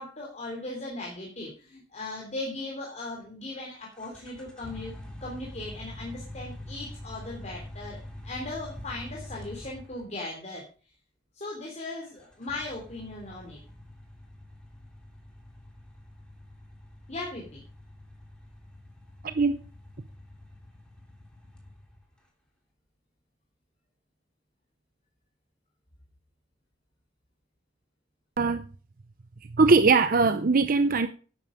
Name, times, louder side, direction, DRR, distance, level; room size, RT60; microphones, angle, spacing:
voice 1, 0.0-4.9 5.2-10.7 11.3-13.6 17.1-17.6, left 2 dB, 40° left, -1 dB, 3.1 m, -38 dB
sound 1, 3.9-10.3 12.1-22.2, left 1 dB, 5° left, 3.2 m, -45 dB
voice 2, 19.2-19.6 28.4-28.6 29.5-31.1, right 4 dB, 50° right, 10 dB, 0.7 m, -21 dB
11.5 x 9.2 x 5.0 m, 0.38 s
head